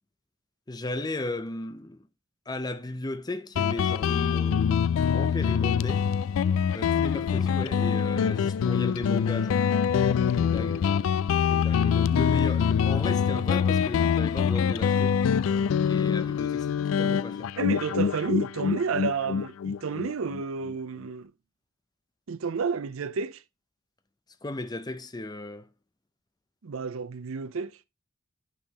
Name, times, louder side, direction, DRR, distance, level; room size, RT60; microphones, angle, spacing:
voice 1, 0.7-2.0 2.5-6.0 6.7-9.6 10.4-10.9 11.5-15.2 15.9-17.5 24.4-25.7, left 2 dB, 20° left, 0.6 m, -35 dB
Guitar, 3.6-20.8, left 7 dB, 80° left, 0.3 m, -25 dB
voice 2, 17.6-21.3 22.3-23.4 26.6-27.8, right 5 dB, 90° right, 0.5 m, -31 dB
8.3 x 5.5 x 2.9 m
head